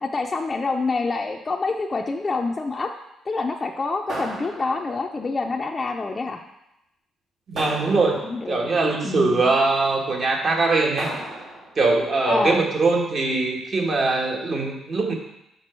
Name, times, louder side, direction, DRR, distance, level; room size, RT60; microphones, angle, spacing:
voice 1, 0.0-2.9 3.3-6.4 8.2-8.7 9.0-9.4 12.2-12.6, left 3 dB, 30° left, 2 dB, 0.5 m, -26 dB
sound 1, 4.1-5.2 7.5-8.5 11.0-11.8, right 1 dB, 75° right, 2.5 m, -34 dB
voice 2, 7.5-8.2 8.5-11.1 11.8-15.1, right 3 dB, 50° right, 1 dB, 1.4 m, -22 dB
6.1 x 5.8 x 4.4 m, 0.88 s
cardioid pair, 90°, 0 cm